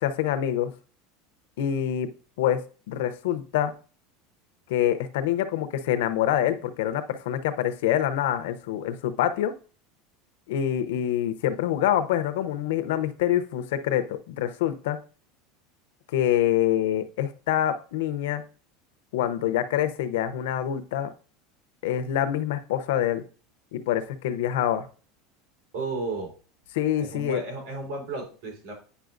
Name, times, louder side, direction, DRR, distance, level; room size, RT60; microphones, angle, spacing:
voice 1, 0.0-0.7 1.6-2.1 2.4-2.6 2.9-3.7 4.7-9.5 10.5-15.0 16.1-18.4 19.1-21.1 21.8-23.2 23.7-24.8 26.7-27.4, left 11 dB, 75° left, 10 dB, 0.7 m, -26 dB
voice 2, 25.7-26.3 27.0-28.7, right 3 dB, 80° right, 0 dB, 3.7 m, -33 dB
9.1 x 5.6 x 2.5 m, 0.38 s
supercardioid pair, 175°, 0 cm